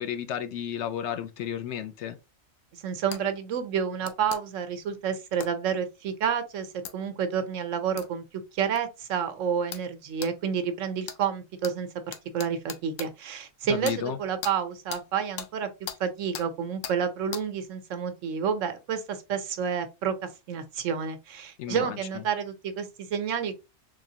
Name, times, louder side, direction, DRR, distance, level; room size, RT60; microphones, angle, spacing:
voice 1, 0.0-2.2 13.7-14.2 21.6-22.0, left 9 dB, 70° left, 0.8 m, -32 dB
voice 2, 2.7-8.2 8.5-11.9 12.3-15.7 16.0-23.6, right 7 dB, 75° right, 1.1 m, -29 dB
sound 1, 3.1-3.2 4.0-4.4 5.4-5.5 6.8-6.9 8.0-8.1 8.8-8.9 9.7-9.9 10.2-10.3 11.0-11.2 11.6-11.7 12.1-13.1 13.8-14.0 14.4-14.5 14.9-15.0 15.4-15.5 15.9-16.0 16.3-16.5 16.8-17.0 17.3-17.4, left 9 dB, 90° left, 1.0 m, -38 dB
3.7 x 3.2 x 2.7 m
omnidirectional pair, 1.3 m